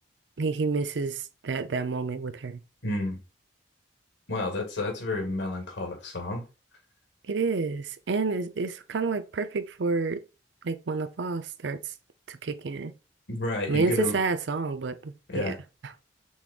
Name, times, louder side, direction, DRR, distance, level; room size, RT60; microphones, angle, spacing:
voice 1, 0.4-2.6 7.2-10.2 10.6-11.9 12.3-12.9 13.7-15.5 15.8-15.9, right 4 dB, 70° right, 0.5 m, -29 dB
voice 2, 2.8-3.2 4.3-6.5 13.3-14.2 15.3-15.6, left 2 dB, 85° left, 1.9 m, -30 dB
6.3 x 3.6 x 2.4 m
head